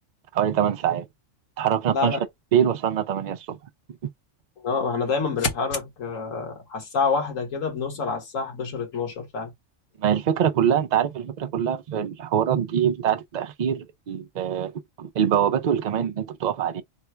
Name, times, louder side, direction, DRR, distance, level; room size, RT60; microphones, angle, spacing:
voice 1, 0.3-1.1 1.6-2.2 2.5-3.6 4.0-4.1 10.0-14.7 15.0-16.8, right 9 dB, 55° right, 0.5 m, -24 dB
voice 2, 4.6-9.5, left 4 dB, 80° left, 1.8 m, -27 dB
3.7 x 2.2 x 4.4 m
omnidirectional pair, 1.3 m